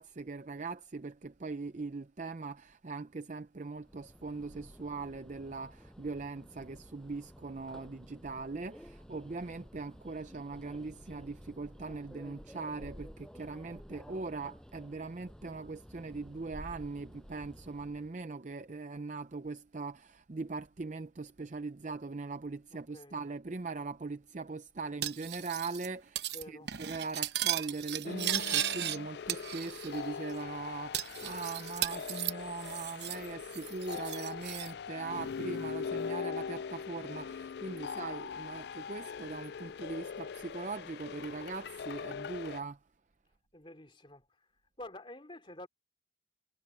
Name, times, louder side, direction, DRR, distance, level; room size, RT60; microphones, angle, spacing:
voice 1, 0.0-42.8, right 3 dB, 40° right, 0.6 m, -41 dB
Subway metro underground, 3.8-18.1, equal, 5° left, 6.5 m, -52 dB
voice 2, 22.7-23.2 26.3-26.7 43.5-44.5 44.8-45.7, left 1 dB, 25° left, 3.0 m, -49 dB
Cutlery silverware, 25.0-25.9 26.2-26.4 26.7-29.0 29.3-30.0 30.3-30.4 30.9-33.3 33.5-34.7, right 12 dB, 60° right, 0.9 m, -36 dB
sound 1, 28.0-42.6, left 6 dB, 55° left, 0.3 m, -41 dB
head